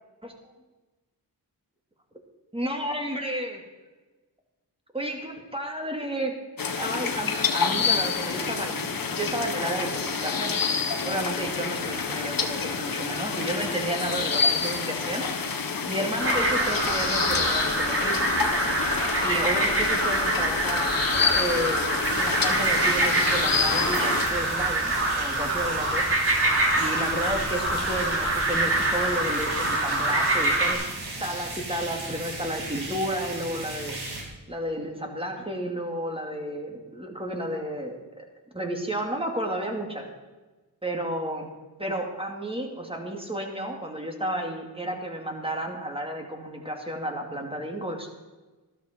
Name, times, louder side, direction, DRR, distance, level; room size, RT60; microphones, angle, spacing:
voice 1, 2.5-3.6 4.9-6.3 6.8-10.6 11.0-15.3 15.9-18.2 19.2-20.8 21.3-26.1 26.8-30.8 31.2-34.0 34.5-38.3 38.5-40.1 40.8-41.5 41.8-48.1, right 1 dB, 15° right, 2 dB, 2.5 m, -32 dB
sound 1, 6.6-24.3, left 5 dB, 55° left, 1.2 m, -28 dB
sound 2, 16.2-30.7, right 2 dB, 35° right, 2.7 m, -25 dB
sound 3, 22.0-34.2, right 2 dB, 70° right, 3.9 m, -36 dB
13.0 x 12.5 x 4.5 m, 1.2 s
cardioid pair, 60°, 40 cm